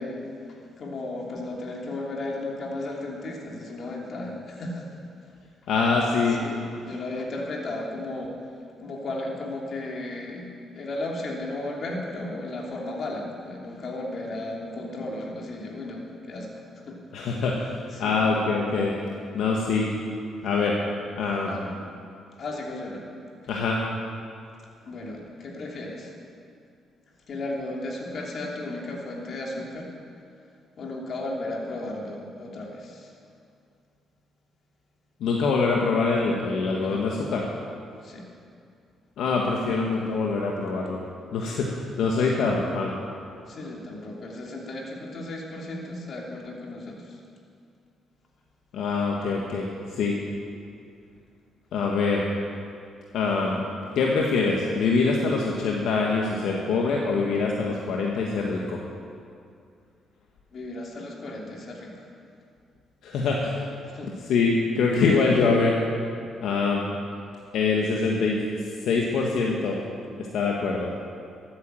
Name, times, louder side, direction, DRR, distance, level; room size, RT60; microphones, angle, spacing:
voice 1, 0.0-5.3 6.3-8.4 8.8-10.5 10.7-17.0 17.9-18.2 21.4-21.7 22.4-23.0 24.8-26.1 27.3-29.9 30.8-33.1 36.8-37.3 38.0-38.3 42.2-42.3 43.5-47.2 60.5-62.1 63.9-64.1, left 2 dB, 55° left, -1 dB, 2.9 m, -35 dB
voice 2, 5.7-6.4 17.1-18.9 19.3-19.9 20.4-20.8 21.2-21.6 23.5-23.8 35.2-37.4 39.2-41.0 41.3-43.0 48.7-50.2 51.7-52.2 53.1-53.6 53.9-58.8 63.0-63.6 64.3-65.8 66.4-66.9 67.5-68.4 68.8-69.8 70.3-70.9, left 4 dB, 80° left, -1 dB, 1.4 m, -24 dB
13.5 x 9.3 x 7.6 m, 2.4 s
cardioid pair, 90°, 0 cm